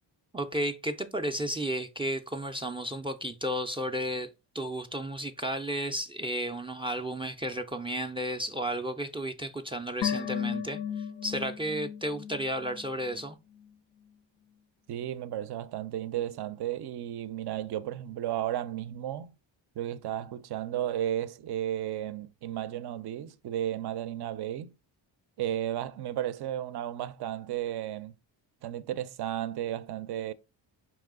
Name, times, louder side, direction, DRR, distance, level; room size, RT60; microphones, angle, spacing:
voice 1, 0.3-4.3 4.5-13.4, equal, 15° right, 0.4 m, -33 dB
sound 1, 10.0-13.3 13.6-13.7, left 8 dB, 85° left, 0.7 m, -35 dB
voice 2, 14.9-19.3 19.8-24.7 25.4-28.1 28.6-30.3, right 11 dB, 60° right, 0.5 m, -33 dB
4.7 x 3.0 x 3.6 m
cardioid pair, 80°, 44 cm